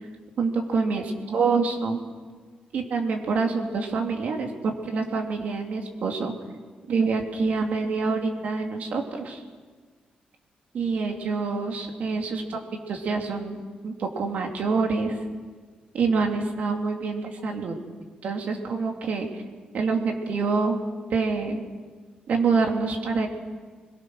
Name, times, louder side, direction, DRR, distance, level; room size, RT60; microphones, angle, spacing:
voice 1, 0.4-2.0 2.7-6.3 6.9-9.4 10.7-12.6 12.9-15.2 15.9-17.7 18.2-19.4 19.7-20.8 21.1-21.6 22.3-23.3, right 4 dB, 60° right, 2 dB, 2.9 m, -26 dB
26.0 x 21.5 x 6.3 m, 1.5 s
wide cardioid pair, 165°, 3 cm